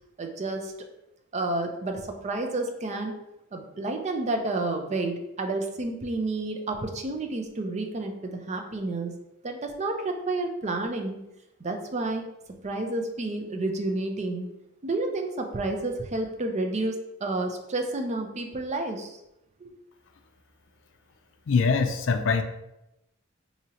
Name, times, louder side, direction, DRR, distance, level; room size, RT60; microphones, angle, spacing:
voice 1, 0.2-0.7 1.3-3.1 3.5-9.1 9.4-11.2 11.6-12.3 12.6-14.5 14.8-19.2 19.6-19.7, right 2 dB, 35° right, 3 dB, 0.5 m, -30 dB
voice 2, 21.5-22.4, left 5 dB, 70° left, 7 dB, 0.4 m, -23 dB
4.9 x 2.8 x 2.8 m, 0.88 s
head